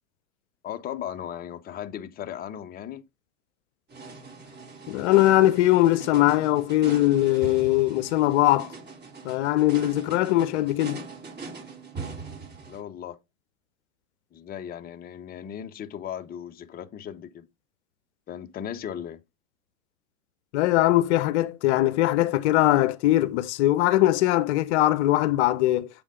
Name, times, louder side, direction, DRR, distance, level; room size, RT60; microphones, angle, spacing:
voice 1, 0.6-3.0 12.7-13.2 14.3-17.5 18.3-19.2, left 9 dB, 20° left, 0.7 m, -37 dB
solemn drum ruffle, 3.9-12.8, right 4 dB, 25° right, 3.0 m, -41 dB
voice 2, 4.9-8.7 9.2-11.0 20.5-25.9, left 15 dB, 55° left, 0.8 m, -21 dB
7.6 x 3.4 x 5.0 m
hypercardioid pair, 100°, 40 cm